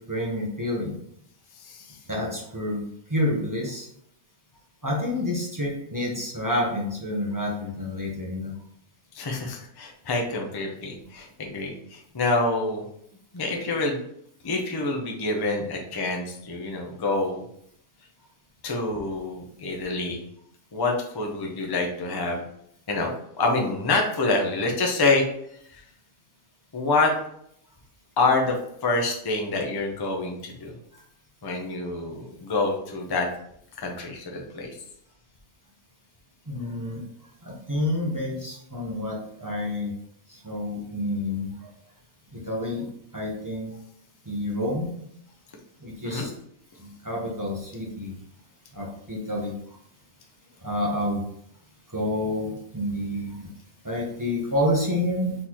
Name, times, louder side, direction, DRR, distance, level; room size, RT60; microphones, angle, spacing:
voice 1, 0.1-1.0 2.1-2.8 3.1-3.9 4.8-8.5 36.5-37.0 37.4-39.9 40.3-41.7 42.3-42.9 43.1-43.8 44.2-44.9 45.8-46.3 46.8-48.1 48.7-49.5 50.6-51.2 51.9-53.5 53.8-55.3, left 1 dB, 15° right, -4 dB, 0.8 m, -28 dB
voice 2, 1.6-2.0 9.1-12.8 13.3-14.0 14.4-17.4 18.6-20.2 20.7-22.4 22.9-25.2 25.7-25.8 26.7-27.1 28.2-28.6 28.8-30.7 31.4-33.3 33.8-34.8 46.0-46.3, left 3 dB, 30° left, 1 dB, 0.4 m, -26 dB
4.2 x 3.9 x 3.0 m, 0.71 s
omnidirectional pair, 1.5 m